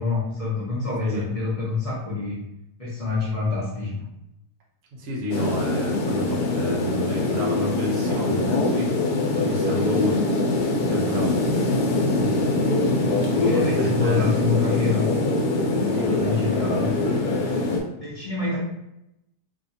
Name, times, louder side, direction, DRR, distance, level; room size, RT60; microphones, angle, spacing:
voice 1, 0.0-2.4 2.8-4.1 12.2-12.3 13.5-15.2 15.7-17.0 18.0-18.6, left 4 dB, 40° left, -8 dB, 0.5 m, -26 dB
voice 2, 5.0-10.2 10.8-11.4 13.3-14.3 15.9-16.5 17.4-17.7, equal, 60° right, -3 dB, 0.9 m, -30 dB
sound 1, 5.3-17.8, left 2 dB, 80° left, 1.1 m, -23 dB
2.8 x 2.5 x 2.6 m, 0.83 s
omnidirectional pair, 1.7 m